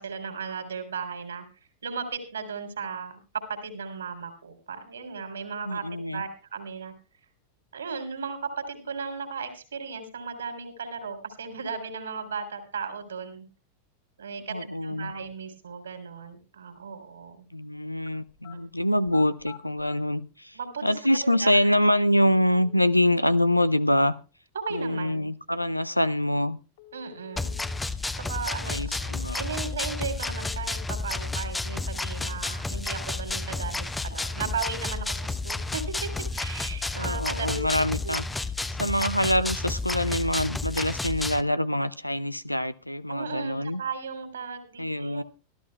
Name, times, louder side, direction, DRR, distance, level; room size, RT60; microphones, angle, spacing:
voice 1, 0.0-3.2 3.6-5.8 6.1-6.9 7.7-13.4 14.2-14.5 14.8-17.4 18.5-18.6 20.5-21.7 24.5-25.3 26.9-27.5 28.1-38.2 43.1-45.2, right 5 dB, 70° right, 6 dB, 3.5 m, -36 dB
voice 2, 5.6-6.2 14.5-15.1 17.5-24.2 24.7-26.6 28.7-29.4 36.9-38.2 38.8-43.8 44.8-45.2, left 1 dB, 90° left, 15 dB, 0.6 m, -25 dB
sound 1, 18.3-18.6 19.0-20.0 21.0-21.1 21.8-22.8 26.8-27.8 28.2-28.3 28.9-29.8 30.2-30.9 31.2-31.8, left 14 dB, 60° left, 3.9 m, -50 dB
sound 2, 27.4-41.4, left 3 dB, 10° left, 0.8 m, -31 dB
24.5 x 13.5 x 2.3 m, 0.33 s
figure-of-eight pair, 90°, 0 cm